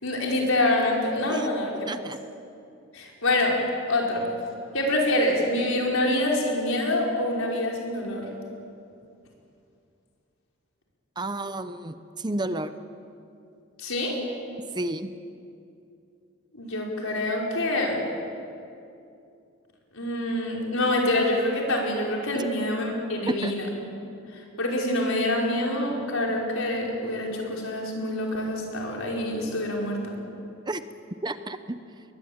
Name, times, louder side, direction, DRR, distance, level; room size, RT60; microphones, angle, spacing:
voice 1, 0.0-1.9 2.9-3.6 3.9-4.2 4.7-8.3 13.8-14.2 16.5-18.0 19.9-23.7 24.3-30.1, left 1 dB, 90° left, -1 dB, 5.3 m, -26 dB
voice 2, 1.9-2.2 11.2-12.7 14.7-15.1 22.3-22.5 23.3-23.5 30.7-30.8 31.2-31.8, right 2 dB, 20° right, 11 dB, 0.7 m, -31 dB
21.5 x 21.0 x 8.8 m, 2.6 s
head